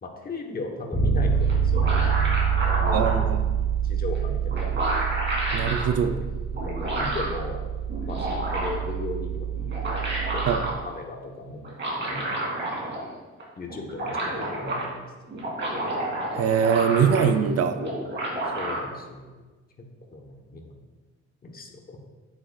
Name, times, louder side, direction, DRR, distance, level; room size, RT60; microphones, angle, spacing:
voice 1, 0.0-2.2 2.6-3.3 3.8-4.9 6.0-6.3 6.6-7.6 8.0-11.7 12.0-12.4 13.6-15.1 15.4-15.5 18.5-19.4 19.8-20.8 21.4-22.1, left 3 dB, 30° left, 1 dB, 1.1 m, -37 dB
Bass guitar, 0.9-10.8, right 7 dB, ahead, 2.2 m, -26 dB
sound 1, 1.5-3.2 4.2-4.3 4.5-5.9 6.5-7.4 7.9-8.9 9.6-10.8 11.6-13.1 13.4-13.5 13.7-14.8 15.3-17.4 17.8-18.8, right 1 dB, 40° right, 2.7 m, -29 dB
voice 2, 2.9-3.5 5.5-6.2 10.5-10.6 16.3-17.8, right 7 dB, 55° right, 8 dB, 0.5 m, -22 dB
9.5 x 8.7 x 2.4 m, 1.3 s
cardioid pair, 155°, 29 cm